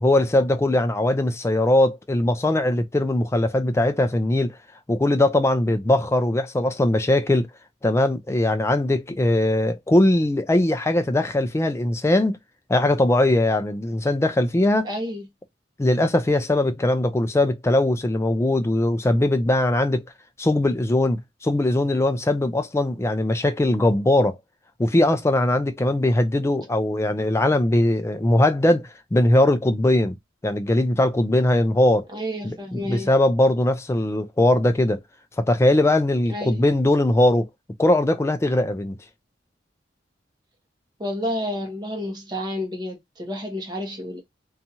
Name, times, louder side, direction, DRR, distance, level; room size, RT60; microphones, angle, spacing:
voice 1, 0.0-4.6 4.9-7.5 7.8-12.4 12.7-14.9 15.8-20.0 20.4-24.4 24.8-30.2 30.4-32.1 32.4-35.0 35.4-37.5 37.8-39.0, left 1 dB, 15° left, 0.3 m, -20 dB
voice 2, 14.8-15.3 32.1-33.1 36.3-36.6 41.0-44.2, left 1 dB, 25° right, 0.9 m, -30 dB
2.7 x 2.4 x 2.7 m
head